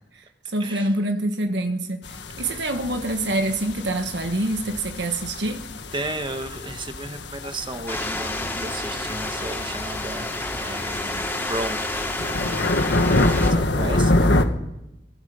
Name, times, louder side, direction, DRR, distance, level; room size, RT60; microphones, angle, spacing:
voice 1, 0.1-5.6, right 1 dB, 70° right, 1.5 m, -26 dB
sound 1, 2.0-14.4, left 1 dB, 70° left, 1.6 m, -26 dB
voice 2, 5.9-11.8 13.4-14.1, right 2 dB, 25° right, 1.5 m, -33 dB
sound 2, 7.9-13.5, left 1 dB, 10° left, 3.4 m, -30 dB
22.5 x 21.5 x 5.7 m
head